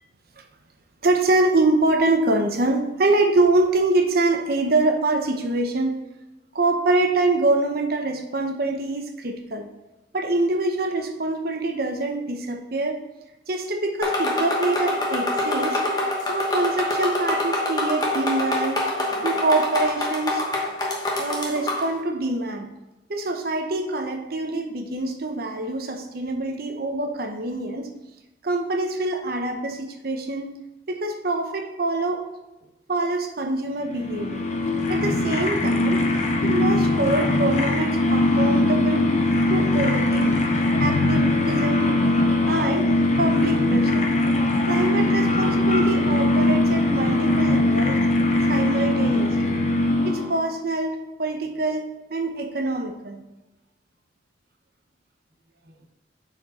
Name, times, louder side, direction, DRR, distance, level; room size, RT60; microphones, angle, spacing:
voice 1, 1.0-5.9 6.5-9.7 10.1-13.0 13.5-15.8 16.3-18.8 19.2-20.4 21.2-22.7 23.1-27.9 28.4-30.6 30.9-32.2 32.9-34.5 34.9-36.0 36.4-39.1 39.5-40.4 40.8-42.0 42.5-42.9 43.2-44.1 44.6-48.0 48.5-49.6 50.0-53.2, right 2 dB, 55° right, 4 dB, 0.8 m, -25 dB
sound 1, 14.0-21.9, left 1 dB, 20° left, 1.1 m, -25 dB
sound 2, 33.8-50.5, left 2 dB, 40° left, 0.7 m, -21 dB
6.4 x 4.5 x 4.2 m, 0.97 s
head